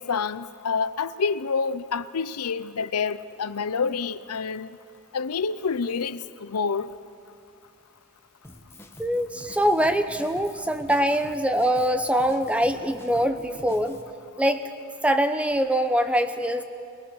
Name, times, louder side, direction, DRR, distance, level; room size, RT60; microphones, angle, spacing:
voice 1, 0.0-4.7 5.1-6.9, left 5 dB, 85° left, 0.6 m, -28 dB
Drum kit, 8.4-14.0, left 1 dB, 10° left, 1.3 m, -47 dB
voice 2, 9.0-14.0 14.4-14.6 15.0-16.6, equal, 5° right, 0.8 m, -23 dB
23.0 x 22.0 x 6.4 m
head